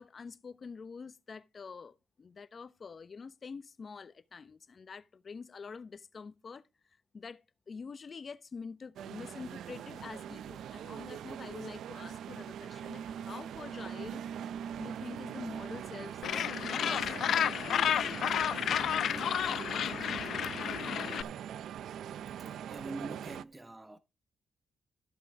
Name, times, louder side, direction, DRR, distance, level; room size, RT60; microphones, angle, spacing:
voice 1, 0.0-6.6 7.1-14.2 14.7-16.2 16.5-17.1, left 5 dB, 45° left, 0.9 m, -46 dB
sound 1, 9.0-23.4, right 9 dB, 80° right, 0.5 m, -42 dB
Gull seagull, 16.2-21.2, left 9 dB, 70° left, 0.5 m, -31 dB
voice 2, 22.3-24.0, right 2 dB, 15° right, 1.0 m, -44 dB
13.5 x 5.7 x 4.9 m
cardioid pair, 85°, 0 cm